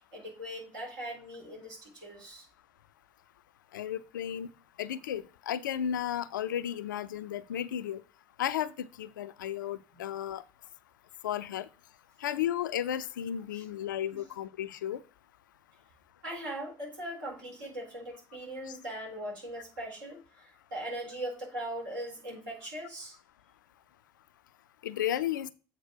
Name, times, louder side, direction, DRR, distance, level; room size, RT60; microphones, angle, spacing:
voice 1, 0.0-2.5 9.9-10.0 13.5-13.6 16.2-23.2, right 1 dB, 75° right, 4.2 m, -40 dB
voice 2, 3.7-4.5 4.8-8.0 8.4-10.4 11.2-11.7 12.2-15.0 18.7-18.8 24.8-25.5, left 10 dB, 75° left, 0.4 m, -33 dB
8.1 x 4.3 x 4.4 m
figure-of-eight pair, 60°, 10 cm